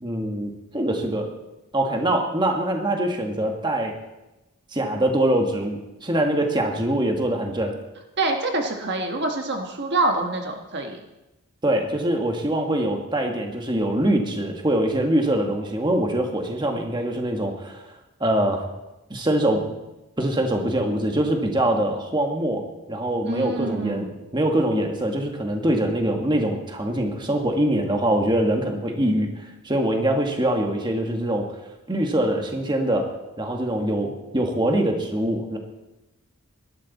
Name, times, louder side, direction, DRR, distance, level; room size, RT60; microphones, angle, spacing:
voice 1, 0.0-1.3 1.7-3.9 4.7-7.8 11.6-17.8 18.2-18.7 19.1-19.6 20.2-24.1 24.3-31.5 31.9-33.1 33.4-35.6, right 1 dB, 20° right, 3 dB, 1.6 m, -23 dB
voice 2, 8.2-11.0 23.2-24.1, right 2 dB, 50° right, 3 dB, 1.4 m, -26 dB
19.0 x 12.0 x 4.2 m, 0.98 s
head